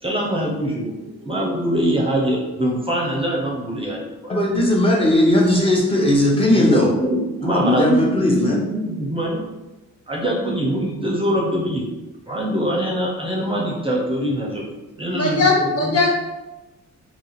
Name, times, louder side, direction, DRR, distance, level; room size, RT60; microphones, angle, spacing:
voice 1, 0.0-4.3 6.5-9.4 10.1-11.8 12.3-14.6 15.0-16.0, right 1 dB, 20° right, -2 dB, 0.8 m, -23 dB
voice 2, 4.3-6.9 7.4-8.6, left 1 dB, 20° left, -3 dB, 1.1 m, -17 dB
voice 3, 15.1-16.1, left 3 dB, 55° left, -1 dB, 0.9 m, -19 dB
2.9 x 2.8 x 4.1 m, 1.1 s
cardioid pair, 90°, 30 cm